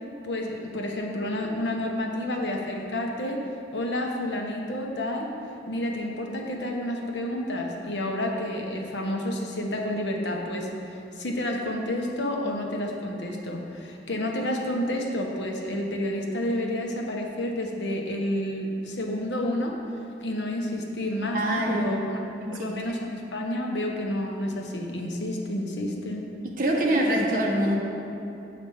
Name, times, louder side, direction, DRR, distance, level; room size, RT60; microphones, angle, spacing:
voice 1, 0.2-3.4 3.7-5.3 5.7-19.7 20.2-22.2 22.5-26.3, left 1 dB, 85° left, 1 dB, 1.1 m, -30 dB
voice 2, 21.3-21.9 22.4-22.7 26.6-27.8, right 1 dB, 50° right, -2 dB, 1.3 m, -24 dB
7.1 x 5.2 x 7.1 m, 2.8 s
head